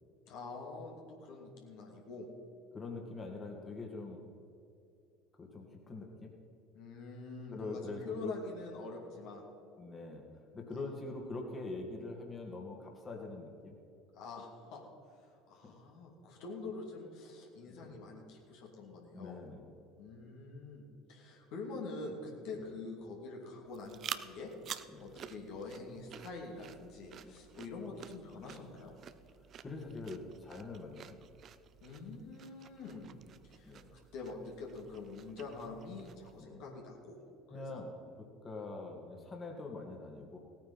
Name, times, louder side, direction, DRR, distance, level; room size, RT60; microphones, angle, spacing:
voice 1, 0.3-2.3 6.7-9.4 10.7-10.8 14.1-14.8 15.2-19.4 20.0-20.8 21.1-24.5 25.0-28.9 31.8-33.1 33.4-33.8 34.1-37.2 37.5-37.8, left 3 dB, 60° left, -1 dB, 2.6 m, -45 dB
voice 2, 2.7-4.3 5.4-6.3 7.5-8.3 9.8-10.2 10.5-13.8 15.6-15.8 17.6-18.1 19.1-19.7 22.6-22.7 24.9-25.2 27.2-27.4 29.6-31.4 33.6-33.9 36.4-36.6 37.5-40.4, left 3 dB, 25° left, 0 dB, 2.4 m, -44 dB
sound 1, 23.7-36.4, right 8 dB, 45° right, 0.6 m, -50 dB
17.0 x 9.0 x 5.6 m, 2.6 s
hypercardioid pair, 70°, 0 cm